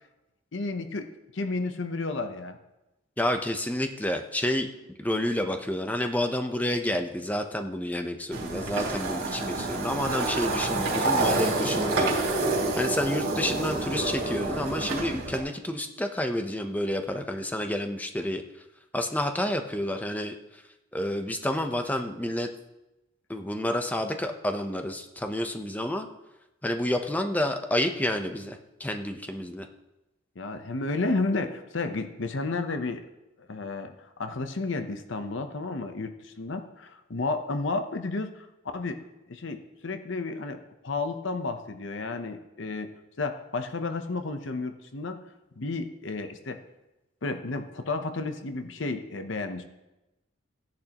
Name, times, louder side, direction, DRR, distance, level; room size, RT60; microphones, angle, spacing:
voice 1, 0.5-2.6 30.4-33.0 33.5-33.9 34.2-38.5 38.7-39.0 39.3-42.9 43.2-45.2 45.6-46.6 47.2-49.6, left 3 dB, 60° left, 7 dB, 0.8 m, -32 dB
voice 2, 3.2-4.7 5.0-12.4 12.7-18.4 18.9-20.3 20.9-22.5 23.3-26.1 26.6-29.7, left 1 dB, 10° left, 5 dB, 0.7 m, -29 dB
sound 1, 8.3-15.4, right 2 dB, 90° right, 3.1 m, -28 dB
16.0 x 10.5 x 3.0 m, 0.97 s
head